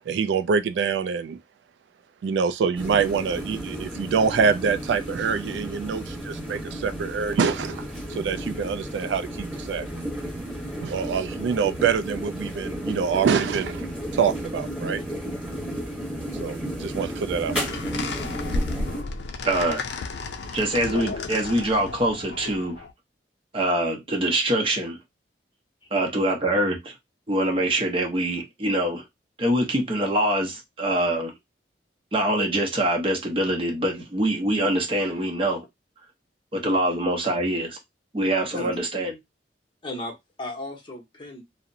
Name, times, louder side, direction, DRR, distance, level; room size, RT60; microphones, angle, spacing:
voice 1, 0.1-1.4 2.2-9.9 10.8-13.9 14.1-15.0 16.4-17.7, right 6 dB, 85° right, 0.3 m, -25 dB
sound 1, 2.8-19.0, equal, 5° right, 0.9 m, -33 dB
voice 2, 10.7-11.1 18.5-18.6 25.8-25.9 38.5-38.8 39.8-41.4, left 2 dB, 30° left, 0.7 m, -36 dB
sound 2, 17.5-22.9, left 3 dB, 75° left, 0.4 m, -32 dB
voice 3, 19.4-19.8 20.5-22.8 23.5-25.0 25.9-26.9 27.3-29.0 29.4-31.3 32.1-35.6 36.5-37.8 38.1-39.2, right 1 dB, 30° right, 0.7 m, -24 dB
2.7 x 2.0 x 2.5 m
head